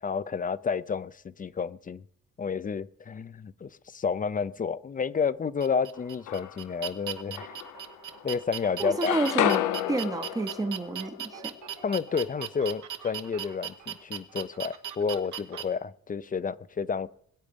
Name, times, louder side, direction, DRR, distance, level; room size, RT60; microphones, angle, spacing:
voice 1, 0.0-2.0 2.4-7.5 8.2-9.2 11.8-17.1, left 6 dB, 30° left, 0.5 m, -30 dB
sound 1, 5.6-15.6, right 9 dB, 80° right, 1.2 m, -38 dB
sound 2, 5.9-6.8 7.4-8.4 8.6-12.6, left 13 dB, 80° left, 0.7 m, -32 dB
voice 2, 8.8-11.5, right 2 dB, 10° right, 0.7 m, -30 dB
21.0 x 8.1 x 5.2 m
cardioid pair, 90°, 30 cm